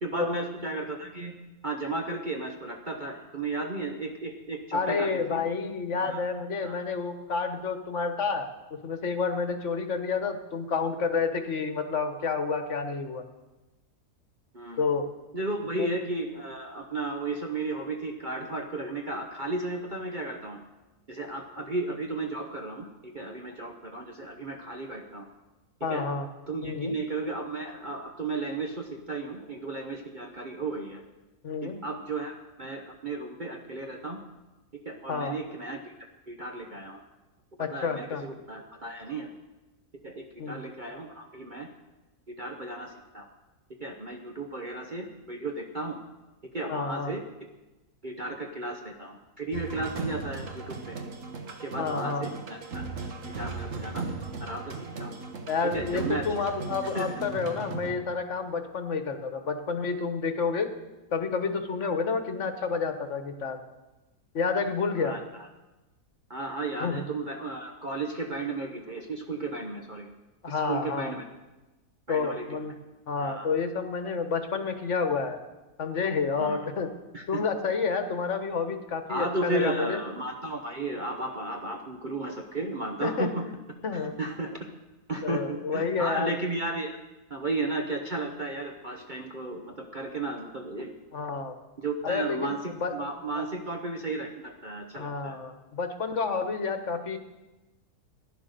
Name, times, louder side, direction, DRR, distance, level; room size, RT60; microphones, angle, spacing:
voice 1, 0.0-1.3 1.6-5.4 6.0-6.2 6.6-6.7 14.5-14.9 15.3-20.6 21.1-25.3 25.9-26.0 26.5-31.0 31.6-34.2 34.9-35.9 36.3-37.0 37.6-39.3 40.0-41.7 42.3-43.3 43.8-46.0 46.4-47.2 48.0-51.0 51.6-52.9 53.4-54.1 54.4-55.2 55.6-56.2 56.9-57.1 65.0-65.5 66.3-70.1 70.5-71.2 72.1-72.7 73.2-73.5 76.4-76.6 77.1-77.4 79.1-83.5 83.9-84.6 85.1-87.0 87.3-90.9 91.8-95.4, right 2 dB, 35° right, 2 dB, 1.0 m, -34 dB
voice 2, 4.7-13.2 14.8-15.1 15.8-16.0 25.8-26.3 26.6-26.9 31.4-31.8 35.1-35.4 37.6-38.2 40.4-40.6 46.7-47.1 51.8-52.2 55.5-60.7 61.1-63.6 64.3-65.2 66.8-67.0 70.4-71.1 72.1-72.7 73.1-75.4 75.8-76.9 77.3-80.0 83.0-83.3 83.8-84.1 85.2-86.3 91.1-91.5 92.0-92.5 92.8-93.1 93.3-93.4 94.9-97.2, left 5 dB, 50° left, 8 dB, 1.4 m, -29 dB
sound 1, 49.5-57.9, right 4 dB, 55° right, 1.6 m, -37 dB
15.0 x 10.5 x 6.7 m, 1.1 s
omnidirectional pair, 1.6 m